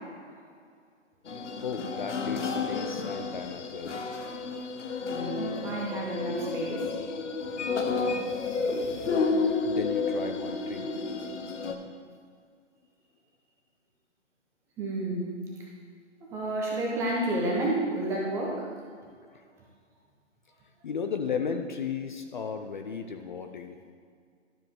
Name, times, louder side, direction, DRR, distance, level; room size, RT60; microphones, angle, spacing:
sound 1, 1.3-11.7, left 4 dB, 70° left, 1.0 m, -31 dB
voice 1, 1.6-4.0 5.2-5.3 9.6-10.9 19.3-19.4 20.8-23.8, left 6 dB, 40° left, 5 dB, 0.5 m, -35 dB
voice 2, 5.0-6.9 11.2-11.4 14.8-15.3 16.2-18.7, right 1 dB, 10° right, -3 dB, 0.6 m, -30 dB
11.5 x 4.9 x 3.7 m, 2.1 s
figure-of-eight pair, 135°, 37 cm